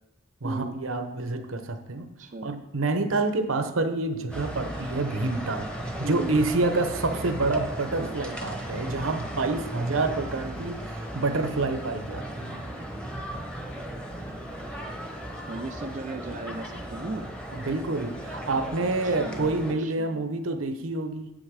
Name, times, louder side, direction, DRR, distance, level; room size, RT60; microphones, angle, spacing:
voice 1, 0.4-2.1 2.4-5.7 6.0-12.7 17.5-21.3, right 3 dB, 80° right, 8 dB, 0.8 m, -28 dB
voice 2, 2.2-2.5 6.0-6.3 15.5-17.3 19.0-20.2, right 2 dB, 35° right, 5 dB, 0.4 m, -36 dB
sound 1, 4.3-19.7, equal, 5° left, 1.0 m, -36 dB
8.2 x 6.5 x 4.7 m, 0.92 s
head